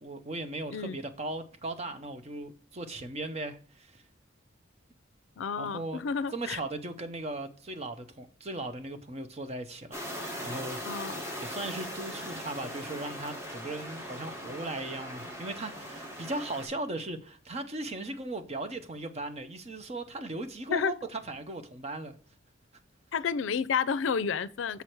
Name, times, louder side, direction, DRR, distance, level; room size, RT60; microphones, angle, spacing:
voice 1, 0.0-4.0 5.6-6.0 6.3-10.0 10.4-10.8 11.4-22.2, right 2 dB, 35° right, 0.8 m, -37 dB
voice 2, 5.4-6.6 10.9-11.2 20.7-20.9 23.1-24.8, left 6 dB, 80° left, 0.4 m, -30 dB
sound 1, 9.9-16.7, equal, 15° right, 1.6 m, -40 dB
6.8 x 4.7 x 4.5 m
head